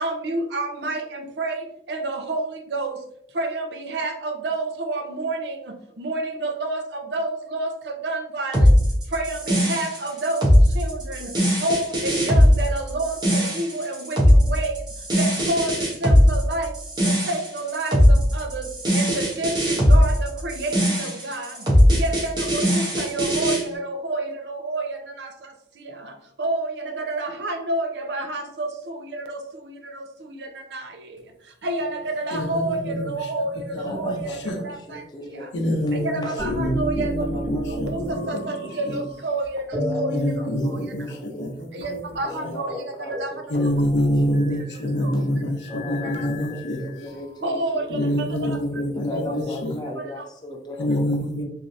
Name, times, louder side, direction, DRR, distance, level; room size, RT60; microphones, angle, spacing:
voice 1, 0.0-8.8 9.0-14.9 15.2-16.8 17.0-35.5 35.9-41.1 41.7-43.7 44.5-45.2 46.0-46.3 46.8-46.9 47.4-48.6 49.1-50.3, right 2 dB, 70° right, 5 dB, 0.5 m, -30 dB
sound 1, 8.5-23.6, equal, 25° right, 0.8 m, -19 dB
voice 2, 32.3-33.1 33.8-34.6 35.5-38.4 38.9-39.0 40.1-42.2 42.4-42.5 43.5-46.8 47.9-49.8 50.8-51.4, equal, 80° left, 4 dB, 0.6 m, -26 dB
voice 3, 33.7-35.5 35.9-36.3 37.3-37.4 38.9-39.0 39.9-40.0 40.7-40.8 41.3-41.5 42.3-43.6 43.9-44.0 44.5-44.6 45.7-48.2 48.9-51.0, left 2 dB, 25° left, 2 dB, 0.5 m, -37 dB
sound 2, 36.4-39.3 39.7-41.5 41.8-41.9 42.2-42.4 42.7-42.8 43.1-44.8 45.6-47.2 47.9-48.8, equal, 45° right, 1.5 m, -33 dB
3.2 x 2.6 x 2.5 m, 0.73 s
head